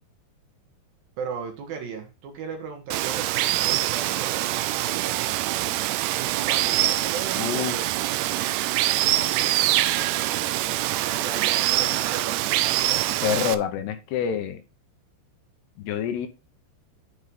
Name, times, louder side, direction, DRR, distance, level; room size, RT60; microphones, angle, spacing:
voice 1, 1.2-5.1 6.2-8.1 11.0-12.4 12.8-13.1, right 6 dB, 65° right, 4 dB, 2.9 m, -37 dB
Water, 2.9-13.6, right 15 dB, 85° right, 2.6 m, -24 dB
voice 2, 7.4-7.7 13.2-14.6 15.8-16.3, left 9 dB, 75° left, 8 dB, 2.8 m, -27 dB
9.8 x 5.4 x 3.7 m, 0.29 s
omnidirectional pair, 5.1 m